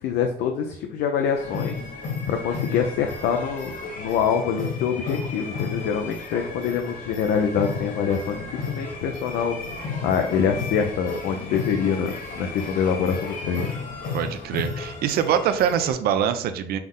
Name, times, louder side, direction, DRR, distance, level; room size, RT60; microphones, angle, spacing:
voice 1, 0.0-1.8 2.3-9.6 10.0-13.7, left 7 dB, 80° left, 4 dB, 0.5 m, -25 dB
sound 1, 1.3-15.9, left 4 dB, 55° left, 1.4 m, -33 dB
voice 2, 14.1-16.8, right 9 dB, 70° right, 9 dB, 0.5 m, -24 dB
5.7 x 2.1 x 3.6 m, 0.64 s
cardioid pair, 110°, 17 cm